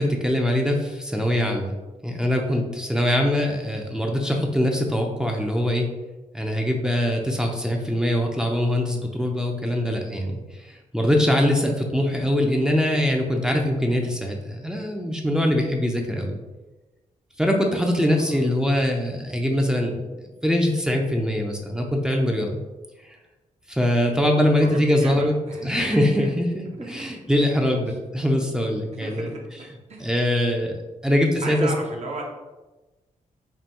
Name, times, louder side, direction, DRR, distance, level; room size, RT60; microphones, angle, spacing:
voice 1, 0.0-1.7 2.0-5.9 6.3-10.4 10.6-16.4 17.4-22.6 23.7-25.3 25.6-29.3 30.0-30.7 31.0-31.7, left 1 dB, 5° right, 0 dB, 0.5 m, -23 dB
voice 2, 18.0-18.8 24.6-26.3 26.6-27.2 27.9-28.0 29.0-30.1 31.1-32.3, right 2 dB, 55° right, 0 dB, 0.8 m, -36 dB
5.3 x 2.2 x 2.9 m, 1.1 s
cardioid pair, 95°, 14 cm